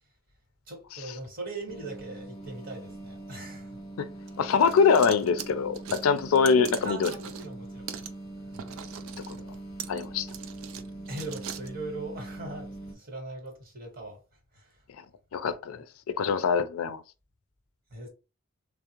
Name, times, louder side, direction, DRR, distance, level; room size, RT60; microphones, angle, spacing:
voice 1, 0.7-3.8 6.8-7.9 8.5-8.8 11.1-14.2 14.5-14.8 15.7-15.8 17.9-18.1, right 2 dB, 45° right, 1.1 m, -40 dB
sound 1, 1.7-12.9, right 2 dB, 45° left, 0.7 m, -42 dB
sound 2, 4.3-7.6 7.9-8.1 8.5-11.7, right 8 dB, 75° right, 0.4 m, -41 dB
voice 2, 4.4-7.1 9.3-9.4 9.9-10.3 15.0-15.1 15.3-15.8 16.2-17.0, left 5 dB, 85° left, 0.4 m, -24 dB
3.4 x 2.0 x 2.9 m
head